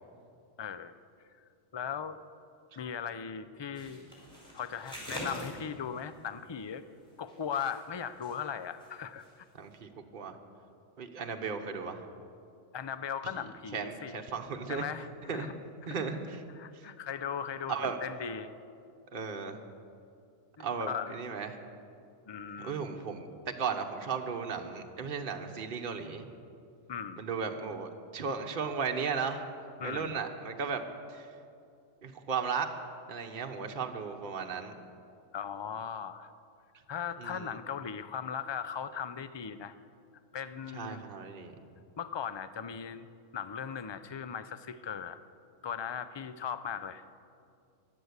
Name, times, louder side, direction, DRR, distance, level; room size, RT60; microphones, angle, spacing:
voice 1, 0.6-0.9 1.7-2.2 2.8-4.0 4.5-6.8 7.2-9.2 12.7-14.2 14.7-15.5 15.8-16.0 16.6-18.5 20.6-21.2 22.3-22.9 26.9-27.2 29.8-30.2 35.3-36.3 36.9-39.7 40.3-41.0 42.0-43.1 43.3-45.2 45.6-47.0, left 7 dB, 40° left, 13 dB, 0.3 m, -38 dB
sound 1, 3.7-6.2 7.0-8.4 8.7-8.9 9.2-9.3, equal, 5° left, 4.8 m, -44 dB
voice 2, 9.6-10.4 11.0-12.0 13.4-13.5 13.7-14.8 15.3-15.5 15.9-16.4 17.7-18.0 19.1-19.6 20.6-21.5 22.6-23.3 23.6-26.3 27.2-29.4 29.8-30.8 31.1-31.3 32.0-32.7 33.1-34.8 37.2-37.6 40.7-41.5, right 5 dB, 45° right, 4 dB, 1.2 m, -35 dB
15.0 x 11.5 x 8.1 m, 2.4 s
omnidirectional pair, 1.3 m